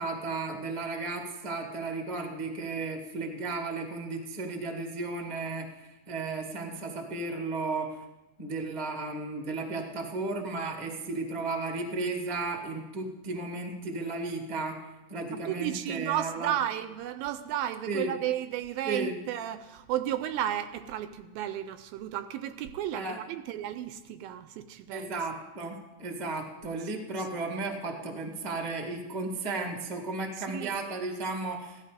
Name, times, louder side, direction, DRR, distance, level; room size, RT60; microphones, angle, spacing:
voice 1, 0.0-8.0 8.4-14.8 15.1-16.5 17.9-18.1 18.9-19.2 22.9-23.2 24.9-31.8, right 3 dB, 30° right, 2 dB, 0.7 m, -34 dB
voice 2, 15.5-25.1 30.5-30.8, right 11 dB, 80° right, 11 dB, 2.3 m, -33 dB
16.0 x 13.0 x 5.0 m, 1.1 s
omnidirectional pair, 4.4 m